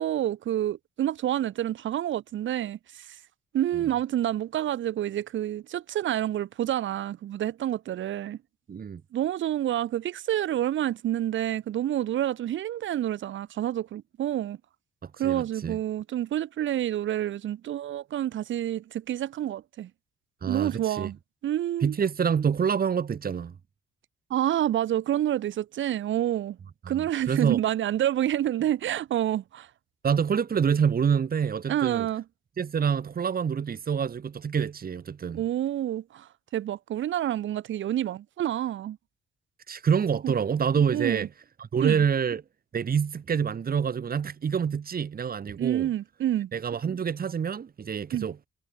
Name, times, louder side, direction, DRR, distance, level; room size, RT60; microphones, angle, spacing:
voice 1, 0.0-3.2 3.5-8.4 9.1-14.6 15.2-19.9 20.5-21.2 21.4-21.9 24.3-26.6 26.9-29.7 31.7-32.2 35.3-39.0 40.2-40.3 40.9-41.3 41.8-42.0 45.6-46.5 48.1-48.3, right 12 dB, 75° right, 4.8 m, -28 dB
voice 2, 8.7-9.0 15.0-15.8 20.4-21.1 21.8-23.5 26.8-27.6 30.0-32.1 32.6-35.4 39.7-41.3 41.6-42.4 42.7-45.9 46.5-48.4, right 7 dB, 50° right, 6.6 m, -27 dB
cardioid pair, 90°, 20 cm